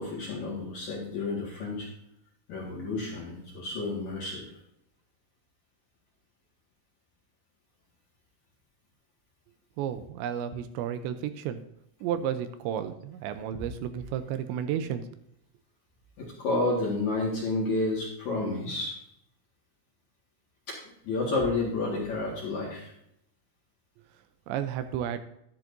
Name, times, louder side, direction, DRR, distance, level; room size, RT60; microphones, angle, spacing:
voice 1, 0.0-1.9 2.5-4.4 16.2-18.9 20.7-20.8 21.0-22.9, left 2 dB, 55° left, -3 dB, 2.4 m, -30 dB
voice 2, 9.8-11.6 12.0-15.1 24.5-25.2, right 9 dB, 85° right, 10 dB, 2.8 m, -32 dB
10.5 x 10.5 x 2.6 m, 0.76 s
omnidirectional pair, 5.4 m